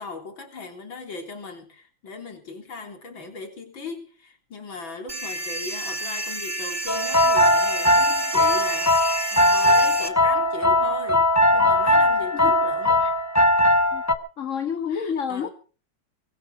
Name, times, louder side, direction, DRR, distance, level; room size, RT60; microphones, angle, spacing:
voice 1, 0.0-13.2 14.9-15.5, left 4 dB, 90° left, 4.2 m, -38 dB
sound 1, 5.1-10.1, right 1 dB, 15° right, 1.3 m, -30 dB
sound 2, 6.9-14.1, left 1 dB, 15° left, 0.7 m, -19 dB
voice 2, 14.4-15.5, left 7 dB, 45° left, 1.4 m, -29 dB
23.5 x 12.0 x 4.9 m
omnidirectional pair, 2.1 m